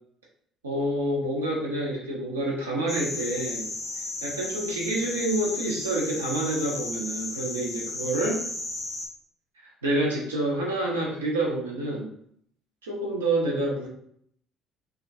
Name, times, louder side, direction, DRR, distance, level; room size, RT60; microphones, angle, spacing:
voice 1, 0.6-3.7 4.2-8.4 9.8-12.1 12.8-13.9, right 1 dB, 85° right, -2 dB, 0.5 m, -28 dB
sound 1, 2.9-9.1, left 2 dB, 40° left, 0.4 m, -34 dB
2.3 x 2.1 x 2.5 m, 0.66 s
figure-of-eight pair, 55°, 0 cm